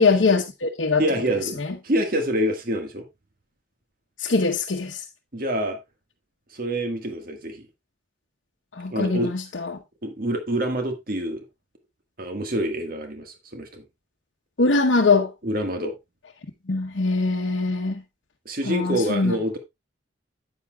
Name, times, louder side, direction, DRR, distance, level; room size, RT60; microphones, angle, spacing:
voice 1, 0.0-1.0 1.6-1.7 4.2-5.0 8.7-9.8 14.6-15.3 16.7-18.0 18.7-19.4, left 3 dB, 85° left, 0.9 m, -22 dB
voice 2, 1.0-3.0 5.3-5.8 6.5-7.7 8.9-9.3 10.0-11.4 12.2-13.8 15.4-16.0 18.4-19.6, right 1 dB, 50° right, 1.6 m, -26 dB
9.7 x 8.4 x 2.3 m
head